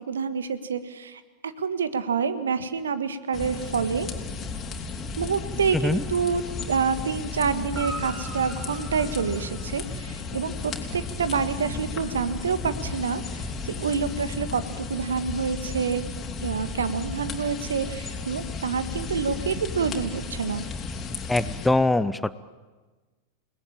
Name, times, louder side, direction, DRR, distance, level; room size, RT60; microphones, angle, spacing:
voice 1, 0.0-4.1 5.2-16.0 16.4-20.6, right 6 dB, 70° right, 13 dB, 1.5 m, -28 dB
sound 1, 3.3-21.7, left 4 dB, 25° left, 3.6 m, -34 dB
Guitar, 7.7-10.3 14.1-14.2, right 2 dB, 20° right, 3.0 m, -40 dB
voice 2, 21.3-22.3, left 2 dB, 5° left, 15 dB, 0.8 m, -22 dB
29.0 x 19.5 x 8.9 m, 1.3 s
figure-of-eight pair, 90°, 0 cm